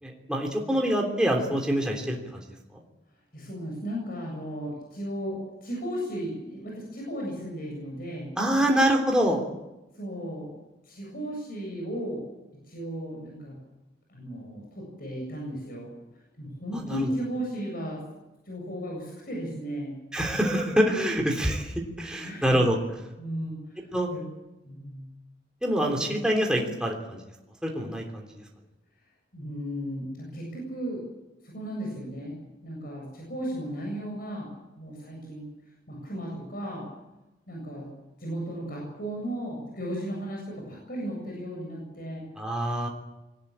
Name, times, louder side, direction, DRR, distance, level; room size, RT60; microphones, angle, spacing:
voice 1, 0.0-2.4 2.7-2.8 8.4-9.4 16.7-17.1 20.1-22.8 23.9-24.1 25.6-27.2 27.6-28.4 42.4-42.9, equal, 5° right, 0 dB, 3.3 m, -25 dB
voice 2, 3.3-8.3 9.9-10.5 10.8-12.2 12.7-13.6 14.1-15.9 16.4-18.0 18.5-19.9 22.2-22.6 23.2-23.8 24.1-24.3 24.6-25.1 29.3-31.0 31.4-32.4 32.6-34.5 34.8-35.4 35.9-36.9 37.5-37.9 38.2-42.2, equal, 55° left, -1 dB, 7.8 m, -35 dB
23.0 x 19.0 x 8.8 m, 1.0 s
head